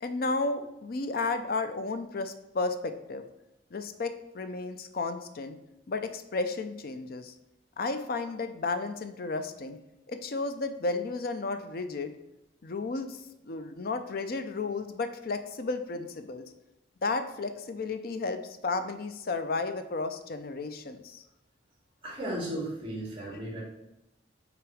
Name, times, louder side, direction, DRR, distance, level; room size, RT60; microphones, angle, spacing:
voice 1, 0.0-3.2 3.7-5.6 5.9-7.3 7.8-9.8 10.1-12.1 12.6-13.2 13.4-16.4 17.0-21.2 23.3-23.4, left 3 dB, 55° left, 9 dB, 0.5 m, -33 dB
voice 2, 22.0-23.6, right 1 dB, 30° right, -4 dB, 2.5 m, -35 dB
6.0 x 3.9 x 4.9 m, 0.90 s
head